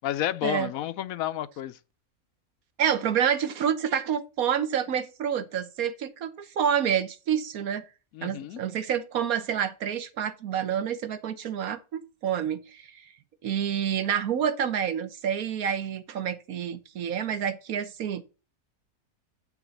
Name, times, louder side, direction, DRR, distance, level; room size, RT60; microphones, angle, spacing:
voice 1, 0.0-1.8 8.1-8.6, left 12 dB, 80° left, 1.1 m, -31 dB
voice 2, 2.8-7.9 8.2-13.0 13.4-18.2, right 8 dB, 85° right, 1.4 m, -28 dB
6.9 x 6.1 x 7.0 m
omnidirectional pair, 1.5 m